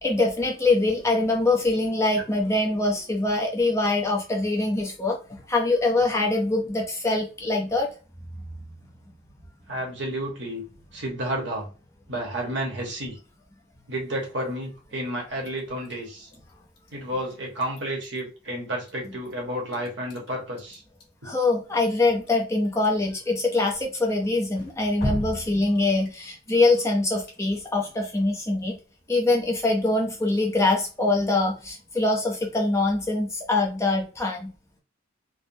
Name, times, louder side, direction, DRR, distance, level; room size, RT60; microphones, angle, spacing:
voice 1, 0.0-5.2 5.5-7.9 21.2-28.8 29.1-34.5, left 2 dB, 15° left, 0 dB, 0.5 m, -23 dB
voice 2, 9.7-10.6 10.9-11.7 12.1-13.2 13.9-16.3 16.9-20.8, right 1 dB, 55° right, 0 dB, 1.1 m, -31 dB
Drip, 15.4-33.7, left 1 dB, 50° left, 1.4 m, -42 dB
3.4 x 2.0 x 2.6 m, 0.36 s
head